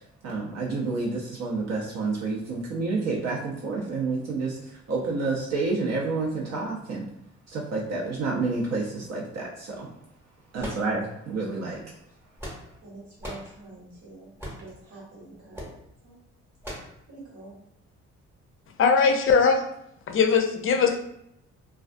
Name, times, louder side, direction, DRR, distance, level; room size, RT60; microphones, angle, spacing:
voice 1, 0.2-4.6 4.9-7.1 7.5-9.9 10.5-11.8, right 3 dB, 60° right, -3 dB, 0.5 m, -29 dB
sound 1, 10.6-11.4 12.1-12.8 13.2-13.5 14.4-14.7 15.5-15.8 16.6-17.0, equal, 10° right, 0.8 m, -38 dB
voice 2, 12.8-14.3 14.6-15.7 16.0-16.2 17.1-17.5, right 2 dB, 75° right, -5 dB, 1.2 m, -46 dB
voice 3, 18.8-19.6 20.1-21.0, left 5 dB, 45° left, 6 dB, 0.4 m, -20 dB
2.3 x 2.2 x 2.5 m, 0.77 s
cardioid pair, 90°, 30 cm